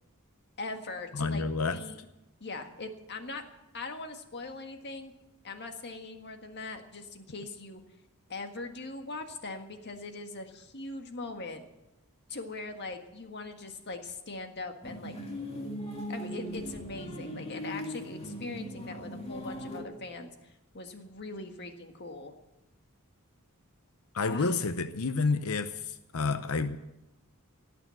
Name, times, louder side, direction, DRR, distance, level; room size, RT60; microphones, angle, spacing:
voice 1, 0.6-1.5 1.7-2.0 2.4-3.4 3.7-5.1 5.4-7.8 8.3-11.6 12.3-15.2 16.1-22.3 24.2-24.5, left 3 dB, 50° left, 6 dB, 1.7 m, -41 dB
voice 2, 1.1-1.8 24.1-26.8, left 4 dB, 70° left, 10 dB, 0.8 m, -29 dB
sound 1, 14.8-19.8, equal, 30° left, 2.5 m, -39 dB
17.5 x 7.0 x 9.8 m, 0.94 s
head